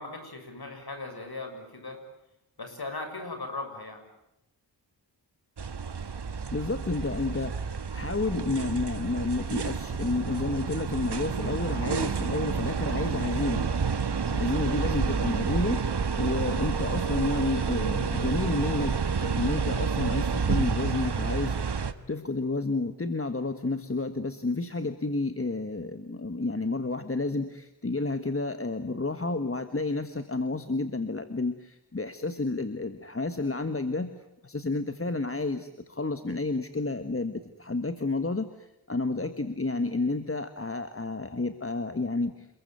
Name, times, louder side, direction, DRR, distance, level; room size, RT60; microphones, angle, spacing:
voice 1, 0.0-2.0 2.6-4.0, left 2 dB, 60° left, 6 dB, 7.0 m, -38 dB
sound 1, 5.6-21.9, right 5 dB, 65° right, 1.5 m, -29 dB
voice 2, 6.5-15.9 16.2-34.1 34.4-42.5, left 3 dB, 30° left, 9 dB, 1.6 m, -31 dB
28.5 x 22.0 x 9.3 m, 0.86 s
wide cardioid pair, 95°, 43 cm